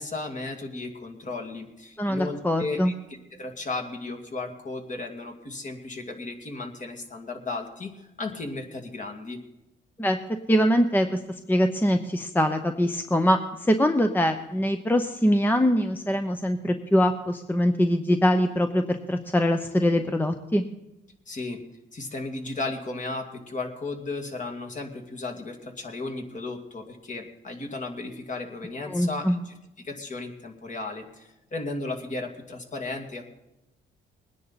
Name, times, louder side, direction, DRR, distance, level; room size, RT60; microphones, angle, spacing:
voice 1, 0.0-2.9 3.3-9.4 21.3-21.6 21.9-33.2, left 3 dB, 40° left, 4 dB, 2.3 m, -35 dB
voice 2, 2.0-2.9 10.0-10.2 10.5-11.2 11.5-20.6 28.9-29.4, equal, 10° left, 7 dB, 0.8 m, -23 dB
20.5 x 10.0 x 4.2 m, 0.93 s
cardioid pair, 90°, 20 cm